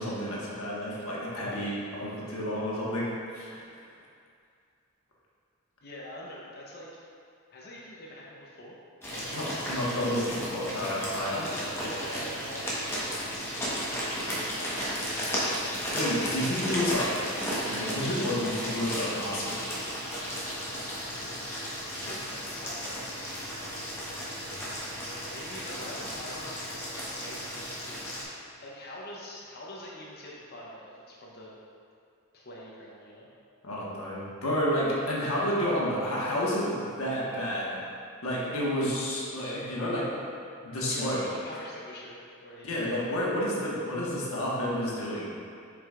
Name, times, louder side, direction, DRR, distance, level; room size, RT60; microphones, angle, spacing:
voice 1, 0.0-3.6 9.3-11.4 15.9-17.3 17.7-19.7 33.6-37.8 38.2-40.2 40.6-41.2 42.6-45.3, equal, 70° left, -6 dB, 1.3 m, -30 dB
voice 2, 5.8-7.0 7.5-8.7 9.1-9.3 9.8-10.4 11.3-13.1 13.7-14.8 21.2-21.5 21.9-23.1 23.7-24.4 25.1-31.6 32.3-33.3 40.9-42.8, left 1 dB, 45° left, -5 dB, 0.8 m, -45 dB
sound 1, 9.0-28.2, equal, 10° left, 1.1 m, -34 dB
7.9 x 4.9 x 2.5 m, 2.4 s
head